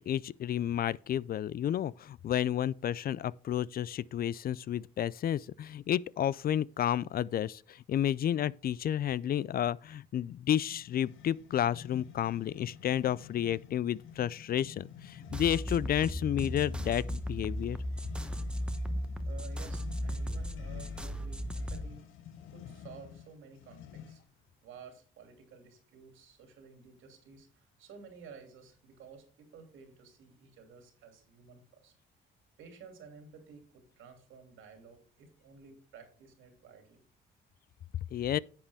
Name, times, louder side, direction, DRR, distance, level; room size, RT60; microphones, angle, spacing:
voice 1, 0.1-17.8 38.1-38.4, left 10 dB, 50° left, 0.4 m, -31 dB
sound 1, 10.6-24.4, left 8 dB, 85° left, 1.0 m, -50 dB
sound 2, 15.3-21.8, equal, 5° right, 1.0 m, -36 dB
voice 2, 19.2-22.0 22.5-24.2 24.6-31.9 32.6-37.0, right 5 dB, 85° right, 2.8 m, -53 dB
10.5 x 7.4 x 3.5 m
cardioid pair, 90°, 20 cm